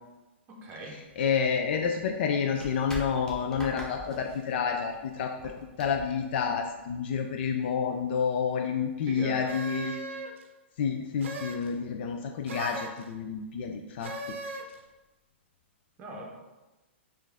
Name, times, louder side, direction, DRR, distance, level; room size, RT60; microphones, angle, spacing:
voice 1, 0.5-1.0 9.1-9.6 16.0-16.3, right 1 dB, 25° right, -1 dB, 0.8 m, -40 dB
sound 1, 1.1-7.0, equal, 10° left, 0.6 m, -44 dB
voice 2, 1.2-10.0 10.8-14.1, left 6 dB, 55° left, 3 dB, 0.4 m, -29 dB
sound 2, 9.5-10.5 11.2-11.7 12.5-13.0 14.0-14.8, right 2 dB, 70° right, 0.6 m, -38 dB
4.3 x 2.5 x 3.4 m, 1.1 s
hypercardioid pair, 150°, 7 cm